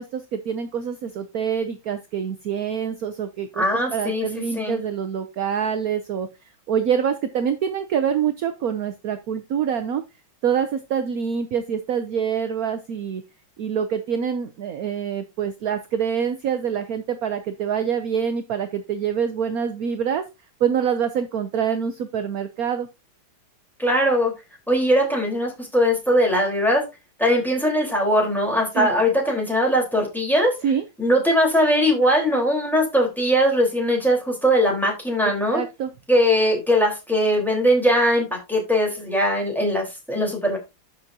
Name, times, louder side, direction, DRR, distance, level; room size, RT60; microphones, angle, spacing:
voice 1, 0.0-10.0 10.4-13.2 13.6-20.2 20.6-22.9 28.7-28.9 30.6-30.8 35.2-35.9, right 7 dB, 60° right, 1.0 m, -25 dB
voice 2, 3.6-4.3 4.5-4.8 23.8-24.3 24.7-26.8 27.2-30.5 31.0-35.6 36.1-40.6, equal, ahead, 3.9 m, -20 dB
12.5 x 6.1 x 2.8 m
omnidirectional pair, 2.3 m